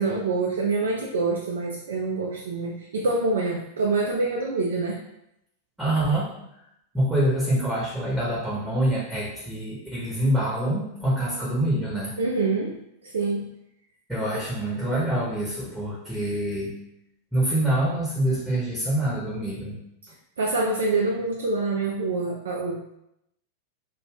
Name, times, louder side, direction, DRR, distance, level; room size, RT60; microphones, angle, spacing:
voice 1, 0.0-5.0 12.2-12.7 13.0-13.4 14.3-14.4 20.4-23.0, right 3 dB, 65° right, -1 dB, 0.3 m, -26 dB
voice 2, 5.8-6.3 6.9-12.1 14.1-16.8 17.3-19.8, right 1 dB, 5° right, -8 dB, 0.9 m, -25 dB
2.3 x 2.3 x 3.3 m, 0.81 s
figure-of-eight pair, 90°, 0 cm